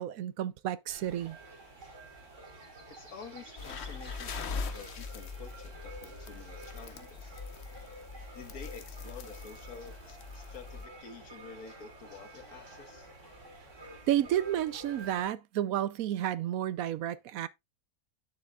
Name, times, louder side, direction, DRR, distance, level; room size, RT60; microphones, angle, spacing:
voice 1, 0.0-1.4 14.1-17.5, right 11 dB, 75° right, 1.0 m, -31 dB
sound 1, 0.9-15.3, right 1 dB, 55° right, 3.2 m, -50 dB
voice 2, 2.9-7.4 8.3-13.1, left 5 dB, 75° left, 1.9 m, -49 dB
sound 2, 3.6-10.9, left 5 dB, 50° left, 1.0 m, -42 dB
10.5 x 6.9 x 2.3 m
omnidirectional pair, 1.6 m